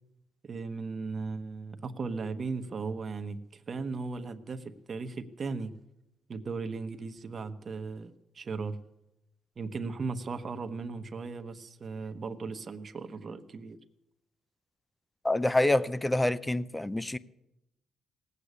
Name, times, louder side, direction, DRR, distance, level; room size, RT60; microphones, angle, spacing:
voice 1, 0.4-5.7 6.3-8.8 9.6-13.8, right 4 dB, 40° right, 1.1 m, -37 dB
voice 2, 15.2-17.2, left 1 dB, 10° left, 0.5 m, -26 dB
18.0 x 8.3 x 8.2 m
cardioid pair, 90°, 0 cm